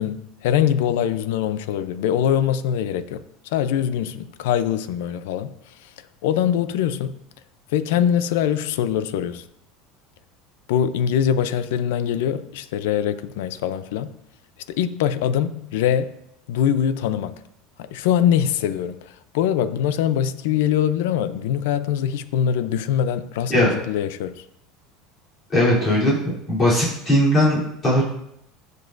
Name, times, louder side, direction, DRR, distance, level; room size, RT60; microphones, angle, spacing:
voice 1, 0.0-5.5 5.8-5.9 6.2-7.2 7.7-9.4 10.7-14.1 14.8-16.1 16.5-17.4 17.8-24.4, left 9 dB, 85° left, 0.5 m, -23 dB
voice 2, 25.5-26.2 26.5-28.0, left 1 dB, 25° left, 3.3 m, -18 dB
15.0 x 5.3 x 2.6 m
supercardioid pair, 140°, 0 cm